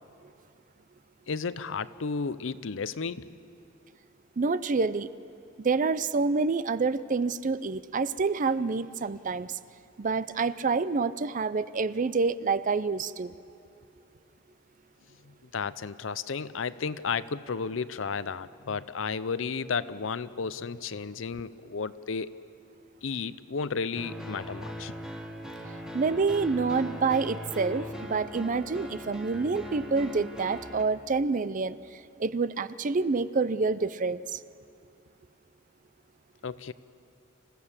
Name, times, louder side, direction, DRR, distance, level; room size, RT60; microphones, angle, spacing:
voice 1, 1.3-3.3 15.3-22.3 23.0-25.0 36.4-36.7, left 5 dB, 65° left, 15 dB, 0.6 m, -33 dB
voice 2, 4.4-5.1 5.6-9.5 10.0-13.3 25.9-31.8 32.2-34.4, right 4 dB, 40° right, 15 dB, 0.5 m, -27 dB
sound 1, 23.9-30.8, equal, 5° right, 1.4 m, -39 dB
26.5 x 15.5 x 7.3 m, 2.5 s
head